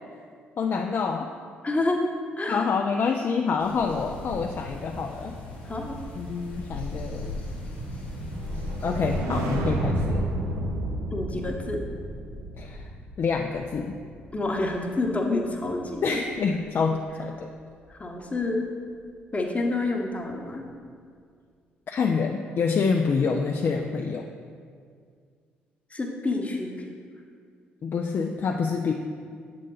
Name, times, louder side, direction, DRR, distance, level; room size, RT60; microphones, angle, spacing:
voice 1, 0.6-1.3 2.5-5.3 6.1-7.4 8.8-10.2 12.6-12.9 13.2-13.9 16.0-17.5 21.9-24.3 27.8-28.9, left 5 dB, 45° left, 3 dB, 0.3 m, -27 dB
voice 2, 1.6-2.1 2.4-2.6 5.6-6.0 11.1-11.8 14.3-16.2 17.9-18.7 19.3-20.6 25.9-26.7, left 2 dB, 25° left, 2 dB, 0.9 m, -28 dB
sound 1, 3.6-9.2, left 2 dB, 85° left, 0.8 m, -39 dB
sound 2, 5.7-16.1 16.4-16.7, right 1 dB, 70° right, 0.6 m, -32 dB
7.3 x 3.8 x 4.0 m, 2.1 s
hypercardioid pair, 45°, 5 cm